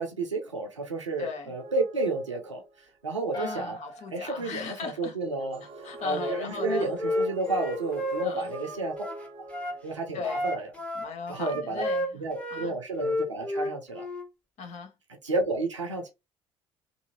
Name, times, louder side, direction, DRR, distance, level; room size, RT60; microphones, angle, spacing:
voice 1, 0.0-3.8 4.1-5.6 6.0-9.0 9.8-10.7 11.3-11.9 12.1-14.0 15.2-16.1, right 3 dB, 85° right, 0.7 m, -31 dB
voice 2, 1.2-1.5 3.4-5.1 5.8-6.9 8.2-8.5 10.1-10.5 11.0-12.2 12.5-12.7 14.6-14.9, left 5 dB, 50° left, 0.8 m, -38 dB
sound 1, 1.6-2.9 5.2-10.5, right 1 dB, 40° right, 0.7 m, -42 dB
sound 2, 3.3-5.6, right 1 dB, 30° left, 1.1 m, -43 dB
Wind instrument woodwind instrument, 6.1-9.8 10.2-12.7 12.9-14.3, left 1 dB, 10° left, 1.0 m, -31 dB
2.7 x 2.7 x 2.8 m
figure-of-eight pair, 55°, 15 cm